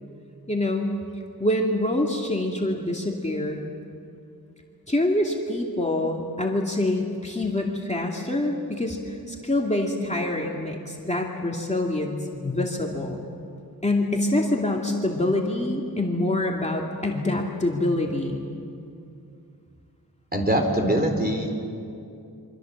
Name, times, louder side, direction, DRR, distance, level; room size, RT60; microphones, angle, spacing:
voice 1, 0.5-0.9 1.4-3.6 4.9-13.3 13.8-18.5, left 1 dB, 20° left, -1 dB, 2.6 m, -26 dB
voice 2, 20.3-21.6, right 1 dB, 25° right, 3 dB, 4.1 m, -23 dB
27.5 x 25.0 x 7.4 m, 2.5 s
wide cardioid pair, 80°, 37 cm